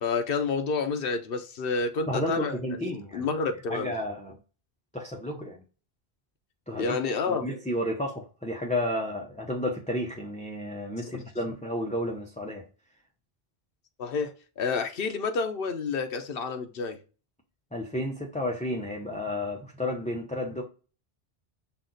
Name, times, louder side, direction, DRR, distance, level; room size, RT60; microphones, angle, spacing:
voice 1, 0.0-2.5 3.1-3.9 6.8-7.5 11.1-11.2 14.0-17.0, left 4 dB, 70° left, 0.9 m, -29 dB
voice 2, 2.0-3.3 3.7-4.4 4.9-5.6 6.7-7.0 7.3-12.7 17.7-20.6, left 1 dB, 10° left, 0.6 m, -32 dB
5.8 x 2.4 x 3.8 m
omnidirectional pair, 1.0 m